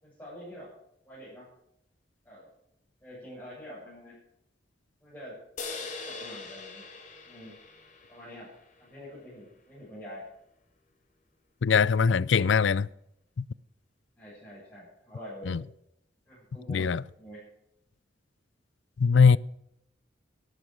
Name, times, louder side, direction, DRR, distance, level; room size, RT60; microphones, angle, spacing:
voice 1, 0.0-0.7 1.0-1.5 2.2-2.5 3.0-4.1 5.0-5.4 5.8-6.8 7.3-7.5 8.1-8.5 8.8-10.3 14.2-15.5 16.3-16.9 17.2-17.4, equal, 10° left, 7.8 m, -45 dB
sound 1, 5.6-9.1, left 4 dB, 40° left, 2.7 m, -42 dB
voice 2, 11.6-12.9 15.5-15.6 16.7-17.0 19.0-19.4, left 5 dB, 80° left, 0.4 m, -21 dB
14.0 x 12.0 x 6.3 m
head